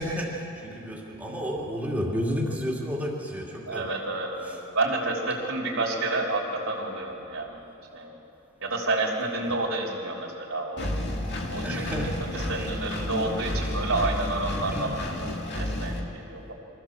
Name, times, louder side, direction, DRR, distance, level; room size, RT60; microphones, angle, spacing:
voice 1, 0.0-3.9 4.4-4.6 9.5-9.6 11.6-12.2 14.7-15.0, equal, 10° right, -3 dB, 2.4 m, -31 dB
voice 2, 3.7-7.6 7.9-8.1 8.6-10.9 11.5-11.9 12.5-16.5, right 2 dB, 75° right, -4 dB, 3.3 m, -29 dB
Engine, 10.8-16.0, left 1 dB, 55° left, 2.0 m, -31 dB
23.5 x 15.0 x 7.3 m, 2.9 s
head